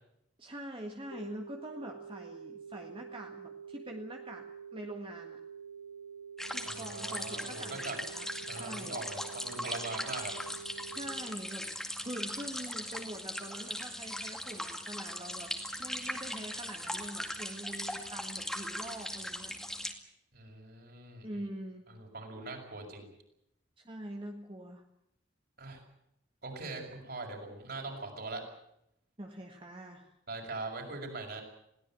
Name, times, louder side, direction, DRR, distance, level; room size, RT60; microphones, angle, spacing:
voice 1, 0.4-4.5 4.7-5.4 6.5-9.0 10.8-11.7 12.0-15.5 15.8-19.5 21.2-21.9 23.8-24.8 29.2-30.1, right 1 dB, 25° right, 2 dB, 1.7 m, -44 dB
sound 1, 1.1-11.1, right 6 dB, 75° left, 1.6 m, -47 dB
sound 2, 6.4-19.9, equal, ahead, 2.1 m, -39 dB
voice 2, 6.6-8.0 8.5-10.3 20.3-21.3 21.9-23.1 25.6-25.8 26.4-28.4 30.3-31.4, right 3 dB, 55° right, 1 dB, 6.5 m, -41 dB
21.5 x 17.5 x 9.0 m, 0.80 s
head